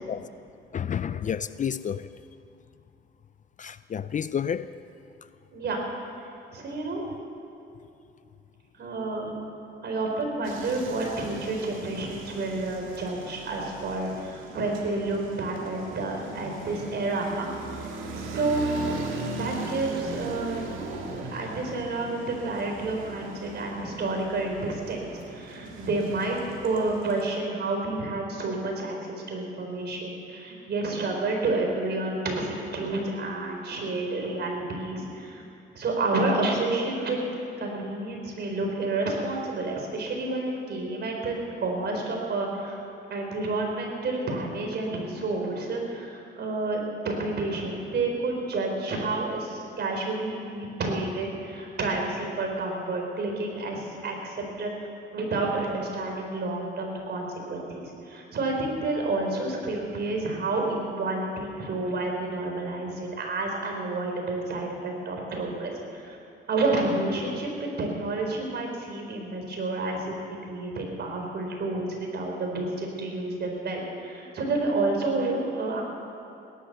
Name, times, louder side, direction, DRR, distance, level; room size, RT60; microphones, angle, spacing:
voice 1, 0.7-2.1 3.6-4.7, left 8 dB, 40° left, 0.5 m, -30 dB
voice 2, 6.5-7.1 8.8-9.4 9.8-17.5 18.1-35.4 35.7-37.2 37.6-42.8 43.1-54.9 55.1-66.2 66.5-70.1 70.4-75.8, right 2 dB, 55° right, 4.3 m, -30 dB
sound 1, 10.4-27.2, right 3 dB, 90° right, 2.1 m, -39 dB
18.0 x 11.5 x 6.8 m
cardioid pair, 90°, 20 cm